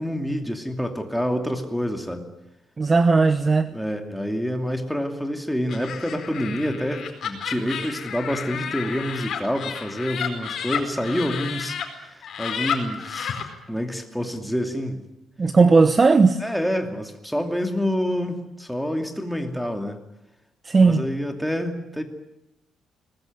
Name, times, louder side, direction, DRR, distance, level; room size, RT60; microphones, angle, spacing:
voice 1, 0.0-2.3 3.7-13.4 13.7-15.0 16.4-20.0 20.8-22.0, equal, ahead, 2.7 m, -27 dB
voice 2, 2.8-3.7 15.4-16.4 20.6-21.0, right 4 dB, 25° right, 0.9 m, -17 dB
Laughter, 5.7-11.8 12.2-13.4, left 8 dB, 50° left, 4.8 m, -31 dB
22.5 x 20.0 x 9.5 m
cardioid pair, 145°, 0 cm